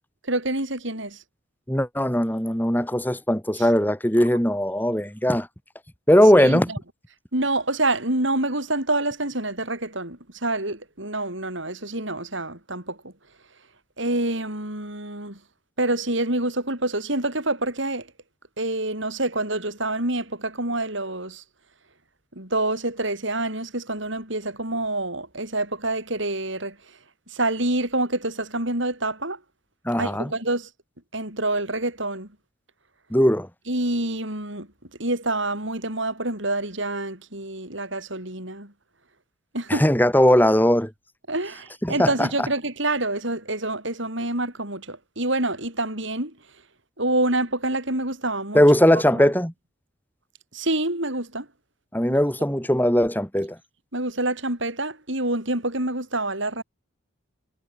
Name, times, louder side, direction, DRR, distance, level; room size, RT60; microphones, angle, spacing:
voice 1, 0.3-1.2 3.6-3.7 6.3-6.8 7.3-13.1 14.0-15.4 15.8-18.1 18.6-21.4 22.4-26.8 27.3-29.4 30.0-30.7 31.1-32.3 33.7-34.7 35.0-38.7 39.5-39.8 41.3-46.3 47.0-48.6 48.9-49.2 50.5-51.5 53.9-56.6, right 2 dB, 65° right, 7.9 m, -27 dB
voice 2, 1.7-5.5 6.1-6.7 29.9-30.3 33.1-33.5 39.7-40.9 41.8-42.5 48.5-49.5 51.9-53.6, equal, 10° left, 3.7 m, -19 dB
head